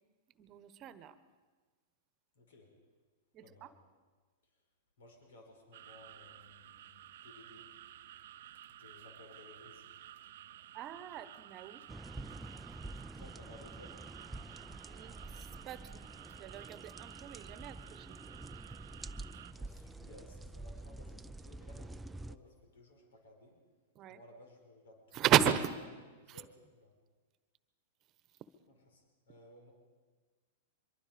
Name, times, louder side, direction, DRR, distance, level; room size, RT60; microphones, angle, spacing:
voice 1, 0.4-1.1 3.3-3.7 10.7-11.8 14.8-18.2 23.9-24.2 25.1-25.8 26.3-26.4, right 10 dB, 35° right, 13 dB, 1.2 m, -35 dB
voice 2, 2.4-2.7 3.4-3.7 5.0-7.7 8.8-10.5 13.2-14.0 19.5-23.6 24.1-25.3 26.2-26.9 28.9-29.7, left 1 dB, 75° left, 3 dB, 5.3 m, -58 dB
sound 1, 5.7-19.5, right 12 dB, 65° right, 0.7 m, -53 dB
sound 2, 11.9-22.4, right 2 dB, 10° right, 0.6 m, -48 dB
24.0 x 22.5 x 5.2 m, 1.4 s
hypercardioid pair, 110°, 0 cm